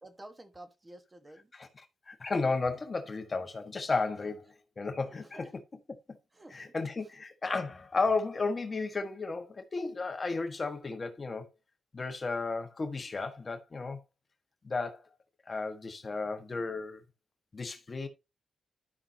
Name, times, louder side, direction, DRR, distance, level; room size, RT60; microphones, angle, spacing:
voice 1, 0.0-1.5 5.1-5.5 6.3-6.5, right 1 dB, 20° right, 1.2 m, -50 dB
voice 2, 1.5-4.5 4.8-5.6 6.5-11.5 11.9-14.0 14.6-15.1 15.5-17.0 17.5-18.1, left 3 dB, 30° left, 1.3 m, -33 dB
12.5 x 5.8 x 2.7 m
cardioid pair, 105°, 0 cm